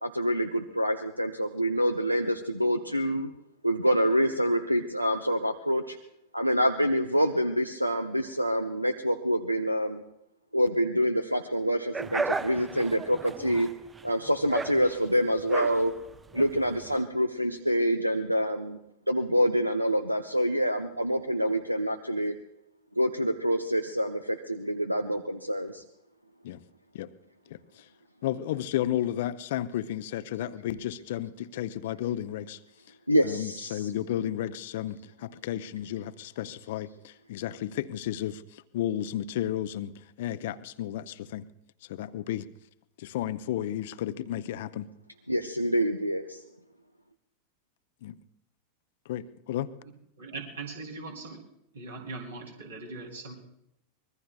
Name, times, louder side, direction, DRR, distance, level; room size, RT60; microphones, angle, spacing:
voice 1, 0.0-3.3 3.6-6.0 6.3-10.0 10.5-13.7 14.0-15.9 16.3-18.8 19.1-22.3 23.0-25.8 33.1-33.7 45.3-46.4, equal, 90° right, 9 dB, 0.6 m, -26 dB
sound 1, 11.9-17.0, right 3 dB, 15° right, 0.6 m, -35 dB
voice 2, 27.5-27.9 28.2-32.6 33.2-41.5 41.9-42.5 43.0-44.9 48.0-48.2 49.1-49.7, left 12 dB, 55° left, 14 dB, 0.6 m, -33 dB
voice 3, 49.8-51.4 51.7-53.3, right 3 dB, 65° right, 1 dB, 3.0 m, -40 dB
24.5 x 21.0 x 2.3 m, 0.81 s
figure-of-eight pair, 90°, 0 cm